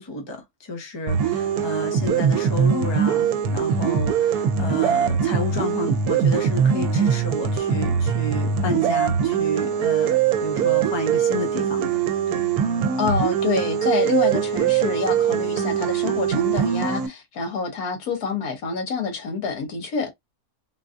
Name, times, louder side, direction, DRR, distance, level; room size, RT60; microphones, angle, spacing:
voice 1, 0.0-12.5, left 1 dB, 25° left, 0.7 m, -31 dB
sound 1, 1.1-17.1, right 7 dB, 80° right, 1.1 m, -22 dB
voice 2, 13.0-20.1, left 4 dB, 80° left, 1.5 m, -27 dB
3.8 x 2.5 x 2.4 m
omnidirectional pair, 1.6 m